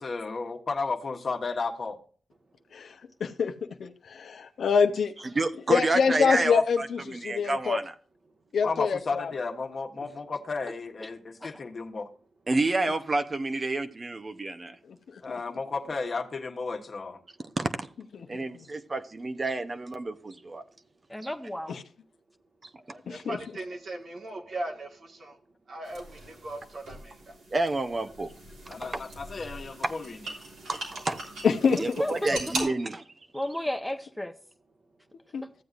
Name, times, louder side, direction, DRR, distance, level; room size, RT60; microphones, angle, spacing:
voice 1, 0.0-2.0 8.6-12.1 15.2-17.2 28.7-30.2, left 4 dB, 50° left, 1.3 m, -33 dB
voice 2, 3.2-3.5 3.8-5.1 5.7-7.8 8.5-9.3 18.2-18.4 23.1-23.4 31.4-31.8 35.3-35.4, left 5 dB, 70° left, 0.8 m, -25 dB
voice 3, 5.2-7.8 12.5-14.8 17.6-17.9 18.3-20.6 27.5-28.3 28.8-29.0 30.7-31.2 31.8-33.0, right 2 dB, 35° right, 0.8 m, -29 dB
voice 4, 21.1-21.8 31.8-32.7 33.3-34.3, left 1 dB, 5° left, 1.0 m, -33 dB
voice 5, 22.9-25.3 25.7-27.1, right 1 dB, 60° right, 1.7 m, -39 dB
sound 1, 25.8-32.6, right 2 dB, 90° right, 3.5 m, -40 dB
14.5 x 7.8 x 2.5 m
cardioid pair, 70°, 0 cm